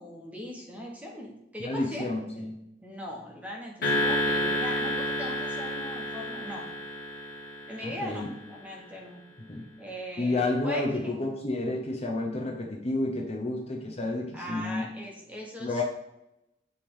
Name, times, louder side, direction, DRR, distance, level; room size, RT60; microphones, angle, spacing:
voice 1, 0.0-2.4 2.8-6.7 7.7-9.2 9.8-10.8 14.3-15.8, left 1 dB, 10° right, -1 dB, 1.2 m, -40 dB
voice 2, 1.7-2.6 7.8-8.3 9.5-9.7 10.2-14.9 15.6-15.8, left 2 dB, 35° left, 0 dB, 0.8 m, -30 dB
sound 1, 3.8-8.3, left 1 dB, 55° left, 1.8 m, -30 dB
9.6 x 3.4 x 3.7 m, 0.86 s
head